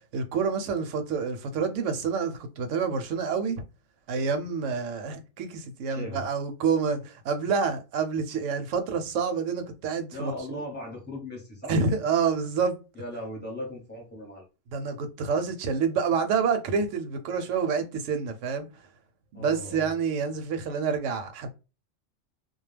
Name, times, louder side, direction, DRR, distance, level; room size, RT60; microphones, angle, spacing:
voice 1, 0.1-3.6 4.1-10.6 11.7-12.8 14.7-18.7 19.3-21.5, right 5 dB, 80° right, 0.9 m, -28 dB
voice 2, 5.9-6.2 10.1-11.7 12.9-14.4 19.3-19.9, left 1 dB, 10° left, 0.9 m, -38 dB
2.2 x 2.2 x 3.1 m
omnidirectional pair, 1.3 m